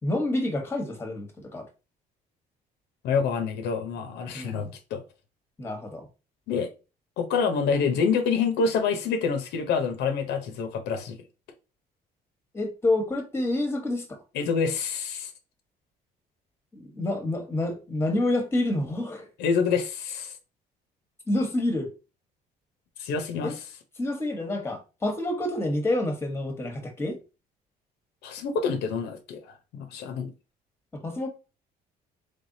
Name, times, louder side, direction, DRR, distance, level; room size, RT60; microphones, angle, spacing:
voice 1, 0.0-1.7 4.3-4.7 5.6-6.1 12.5-14.2 16.7-19.3 21.3-21.9 23.4-23.5 24.0-27.2 30.9-31.3, left 1 dB, 15° left, 1.0 m, -28 dB
voice 2, 3.0-5.0 6.5-6.7 7.2-11.2 14.3-15.3 19.4-20.4 23.0-23.6 28.2-30.3, left 5 dB, 80° left, 0.7 m, -27 dB
3.4 x 3.4 x 2.6 m
cardioid pair, 110°, 17 cm